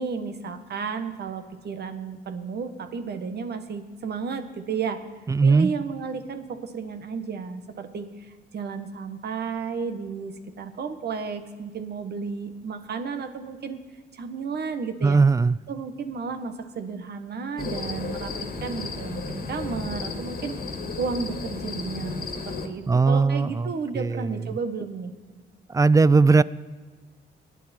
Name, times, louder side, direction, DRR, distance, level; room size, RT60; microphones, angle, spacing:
voice 1, 0.0-5.0 5.4-13.8 14.1-15.2 15.7-20.6 21.0-25.1, right 5 dB, 55° right, 1.4 m, -33 dB
voice 2, 5.3-5.7 15.0-15.6 22.9-24.5 25.7-26.4, right 4 dB, 15° right, 0.4 m, -19 dB
sound 1, 17.6-22.7, left 4 dB, 45° left, 1.8 m, -33 dB
24.0 x 9.5 x 4.4 m
cardioid pair, 90°, 20 cm